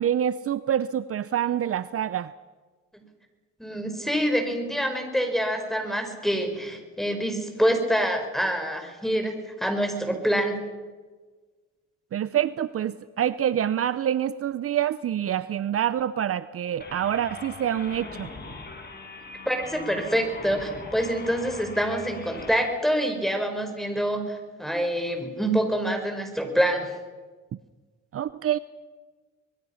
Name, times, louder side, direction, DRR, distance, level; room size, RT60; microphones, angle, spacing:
voice 1, 0.0-2.3 12.1-18.3 28.1-28.6, right 10 dB, 50° right, 15 dB, 0.7 m, -26 dB
voice 2, 3.6-10.6 19.5-26.9, equal, ahead, 5 dB, 5.1 m, -26 dB
sound 1, 16.8-22.7, left 3 dB, 35° left, 5.6 m, -41 dB
25.0 x 21.5 x 5.8 m, 1.4 s
cardioid pair, 90°, 30 cm